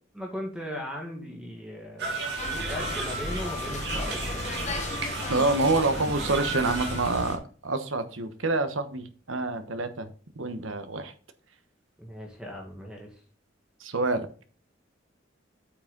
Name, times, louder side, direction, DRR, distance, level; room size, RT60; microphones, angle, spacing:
voice 1, 0.1-4.6 12.0-13.2, equal, 5° right, 0 dB, 1.9 m, -38 dB
sound 1, 2.0-7.3, right 2 dB, 55° right, 2.4 m, -34 dB
sound 2, 2.4-7.4, left 2 dB, 35° left, 1.0 m, -35 dB
voice 2, 5.3-10.1 10.4-11.1 13.8-14.3, right 3 dB, 80° right, 9 dB, 1.1 m, -27 dB
8.2 x 6.2 x 3.9 m, 0.40 s
head